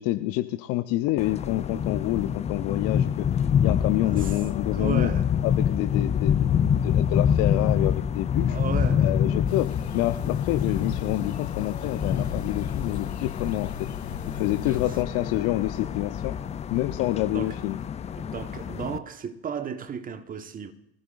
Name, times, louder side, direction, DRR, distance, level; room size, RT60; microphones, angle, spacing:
voice 1, 0.0-3.3 3.6-5.1 5.4-8.6 9.0-13.9 14.3-16.4 16.7-17.8, left 16 dB, 50° left, 0.8 m, -28 dB
sound 1, 1.2-19.0, left 8 dB, 20° left, 0.5 m, -26 dB
voice 2, 4.0-4.4 4.7-5.3 8.5-9.1 14.6-14.8 17.3-17.5 18.1-20.7, right 7 dB, 25° right, 1.4 m, -34 dB
sound 2, 9.5-15.0, left 9 dB, 80° left, 0.9 m, -39 dB
24.0 x 15.0 x 2.6 m
figure-of-eight pair, 75°, 32 cm